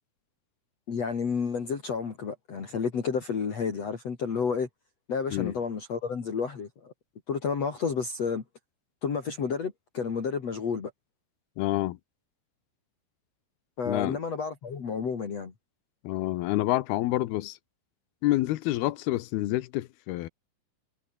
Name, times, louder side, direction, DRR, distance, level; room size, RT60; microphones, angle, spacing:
voice 1, 0.9-4.7 5.1-6.9 7.3-8.4 9.0-10.9 13.8-15.5, left 6 dB, 45° left, 3.8 m, -31 dB
voice 2, 11.6-12.0 13.9-14.2 16.0-17.6 18.2-20.3, left 16 dB, 85° left, 3.0 m, -28 dB
omnidirectional pair, 4.4 m